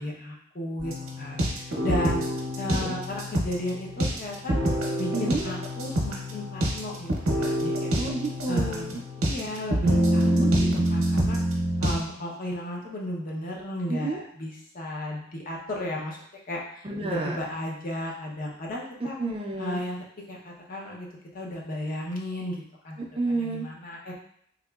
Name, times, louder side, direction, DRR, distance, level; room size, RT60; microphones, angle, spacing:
voice 1, 0.0-2.3 2.6-4.6 5.0-7.9 8.5-9.0 9.2-10.5 10.9-11.4 11.8-16.2 16.5-19.1 19.6-21.1 21.3-23.0 23.3-24.2, left 1 dB, 40° left, -2 dB, 0.6 m, -34 dB
sound 1, 0.8-12.0, equal, 75° right, 0.8 m, -26 dB
voice 2, 5.1-5.4 7.9-9.0 10.2-10.5 13.9-14.2 16.8-17.4 19.0-19.8 23.0-23.7, right 3 dB, 25° right, -1 dB, 0.4 m, -30 dB
3.6 x 2.8 x 2.3 m, 0.67 s
head